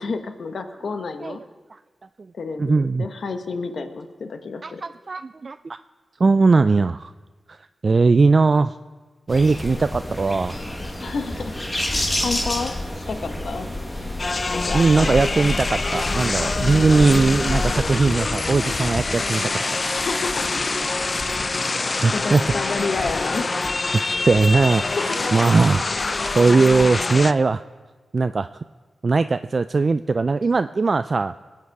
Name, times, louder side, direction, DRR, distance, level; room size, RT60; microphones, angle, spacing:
voice 1, 0.0-1.4 2.3-4.8 11.0-11.5 11.9-12.7 13.1-13.7 14.5-15.2 16.6-17.3 19.9-20.6 21.5-21.6 22.1-23.5 25.0-25.4, left 4 dB, 70° left, 8 dB, 1.1 m, -30 dB
voice 2, 2.6-3.1 4.6-5.8 6.2-7.1 7.5-7.6 7.8-8.8 9.3-10.6 14.7-19.5 22.0-22.4 24.2-27.6 28.1-28.5 29.0-31.3, right 4 dB, 45° right, 11 dB, 0.3 m, -19 dB
sound 1, 9.3-17.7, left 1 dB, 20° left, 1.5 m, -28 dB
sound 2, 14.2-27.3, left 3 dB, 40° left, 0.4 m, -25 dB
22.0 x 8.7 x 4.7 m, 1.3 s
wide cardioid pair, 80°, 0 cm